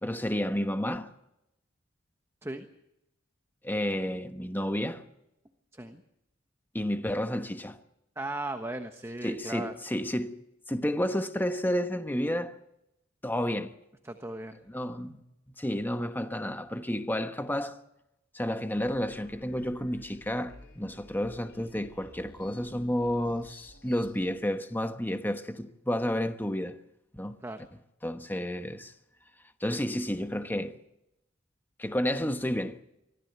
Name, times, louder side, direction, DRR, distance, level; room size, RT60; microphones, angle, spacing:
voice 1, 0.0-1.1 3.6-5.0 6.7-7.8 9.2-10.4 10.7-12.6 13.2-13.7 14.7-15.2 15.6-17.8 18.3-26.8 27.1-27.4 28.0-28.9 29.6-30.7 31.8-32.8, equal, 10° left, 1.2 m, -31 dB
voice 2, 8.2-9.7 14.0-14.6 27.4-27.6, right 2 dB, 15° right, 1.3 m, -37 dB
sound 1, 18.7-24.2, left 1 dB, 55° left, 6.4 m, -54 dB
24.5 x 15.5 x 8.1 m
head